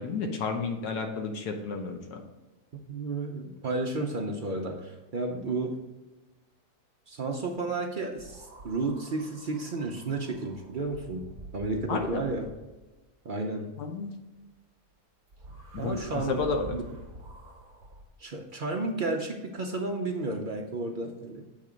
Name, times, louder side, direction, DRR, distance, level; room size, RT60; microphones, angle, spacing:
voice 1, 0.0-2.2 11.9-12.3 13.8-14.1 15.7-16.8, left 4 dB, 75° left, 3 dB, 1.4 m, -32 dB
voice 2, 2.9-5.8 7.1-12.5 13.2-13.7 15.8-16.4 16.7-16.8 18.2-21.4, right 3 dB, 55° right, 2 dB, 0.5 m, -32 dB
sound 1, 8.2-12.9 15.3-18.0, right 1 dB, 35° right, 1.2 m, -47 dB
7.5 x 3.5 x 5.0 m, 1.2 s
omnidirectional pair, 1.7 m